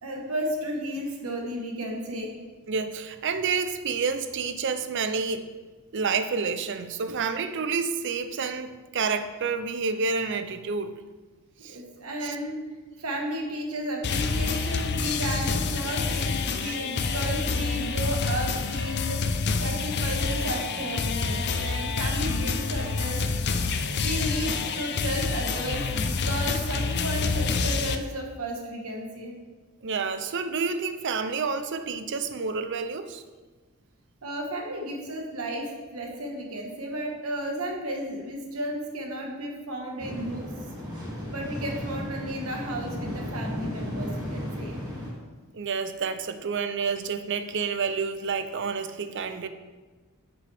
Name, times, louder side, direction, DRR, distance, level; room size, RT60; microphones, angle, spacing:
voice 1, 0.0-2.3 11.7-12.6 13.0-19.2 19.6-23.2 24.0-29.3 34.2-40.4 41.3-44.8, right 1 dB, 85° right, 1 dB, 1.4 m, -33 dB
voice 2, 2.7-5.5 5.9-11.0 11.6-11.8 12.2-12.4 16.6-16.8 29.8-33.2 45.5-49.5, right 5 dB, 55° right, 9 dB, 0.5 m, -29 dB
sound 1, 14.0-28.0, left 4 dB, 50° left, 0.5 m, -27 dB
wind medium gusty cold winter wind swirly blustery, 40.0-45.1, equal, 20° right, 2.2 m, -34 dB
9.6 x 6.1 x 3.5 m, 1.4 s
head